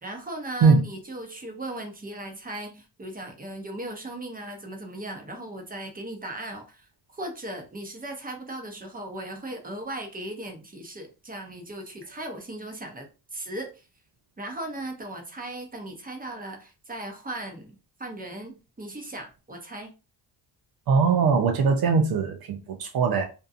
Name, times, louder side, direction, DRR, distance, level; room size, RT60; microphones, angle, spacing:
voice 1, 0.0-6.9 7.1-13.1 13.3-13.8 14.4-19.9, right 1 dB, 20° right, 0.8 m, -37 dB
voice 2, 20.9-23.2, right 5 dB, 60° right, 0.6 m, -21 dB
2.6 x 2.2 x 2.5 m
cardioid pair, 80°, 42 cm